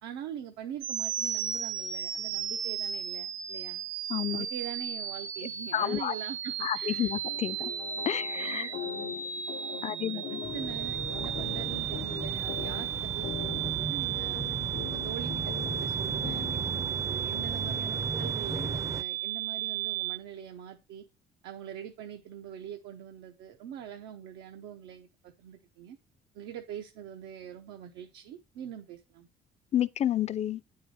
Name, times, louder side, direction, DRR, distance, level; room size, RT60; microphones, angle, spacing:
voice 1, 0.0-3.8 4.3-7.1 7.9-9.2 9.7-14.4 14.8-21.0 21.4-26.0 26.3-29.3, right 9 dB, 90° right, 0.9 m, -43 dB
sound 1, 0.8-20.2, right 10 dB, 50° right, 0.8 m, -34 dB
voice 2, 4.1-4.5 5.7-6.1 6.6-7.7 8.1-8.7 9.8-10.4 29.7-30.6, left 11 dB, 40° left, 0.5 m, -30 dB
sound 2, 7.2-19.0, left 13 dB, 75° left, 0.7 m, -43 dB
sound 3, 10.4-19.0, right 4 dB, 20° right, 0.5 m, -37 dB
9.3 x 4.7 x 4.7 m
cardioid pair, 110°, 17 cm